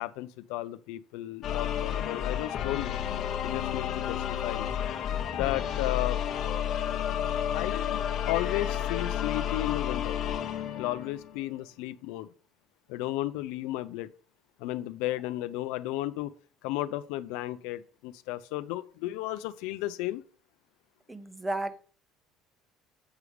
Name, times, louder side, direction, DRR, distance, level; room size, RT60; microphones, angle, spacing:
voice 1, 0.0-3.0 3.4-4.8 5.3-6.2 7.5-8.0 8.3-10.2 10.8-12.3 12.9-14.1 14.6-16.3 16.6-20.2, left 16 dB, 85° left, 12 dB, 0.4 m, -34 dB
sound 1, 1.4-11.4, left 9 dB, 40° left, 0.8 m, -31 dB
voice 2, 21.1-21.8, right 2 dB, 5° right, 14 dB, 0.4 m, -33 dB
8.1 x 5.0 x 4.9 m, 0.43 s
cardioid pair, 170°, 0 cm